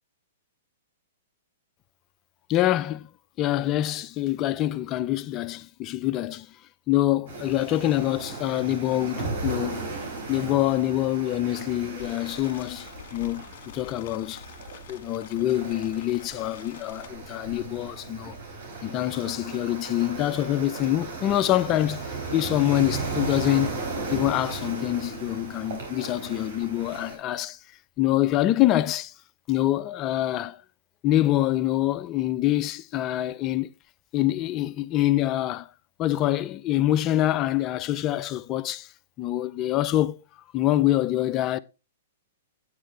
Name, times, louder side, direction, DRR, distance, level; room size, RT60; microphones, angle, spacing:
voice 1, 2.5-3.1 3.4-6.5 6.9-9.9 10.3-13.4 13.7-14.4 14.9-18.3 18.8-22.0 22.3-23.7 24.1-27.6 28.0-29.1 29.5-30.6 31.0-33.7 34.1-35.7 36.0-38.9 39.2-40.2 40.5-41.6, left 14 dB, 30° left, 0.5 m, -25 dB
sound 1, 7.3-27.2, right 3 dB, 60° right, 4.2 m, -36 dB
sound 2, 12.0-17.1, left 9 dB, 55° left, 1.9 m, -47 dB
8.8 x 8.8 x 3.2 m
hypercardioid pair, 125°, 0 cm